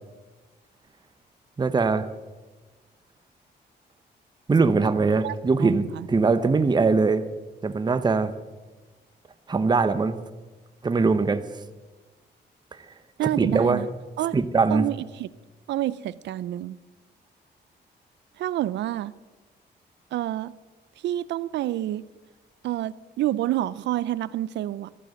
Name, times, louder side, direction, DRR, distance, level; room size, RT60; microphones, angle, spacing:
voice 1, 1.6-2.1 4.5-7.2 7.6-8.3 9.5-10.2 10.8-11.4 13.4-13.8 14.3-14.8, right 4 dB, 25° right, 10 dB, 0.7 m, -21 dB
voice 2, 5.2-6.1 13.2-13.9 14.2-14.4 14.7-15.3 15.7-16.8 18.4-19.1 20.1-20.5 21.0-22.0 22.6-24.9, right 13 dB, 80° right, 17 dB, 0.4 m, -28 dB
12.0 x 10.0 x 7.7 m, 1.2 s
cardioid pair, 95°, 18 cm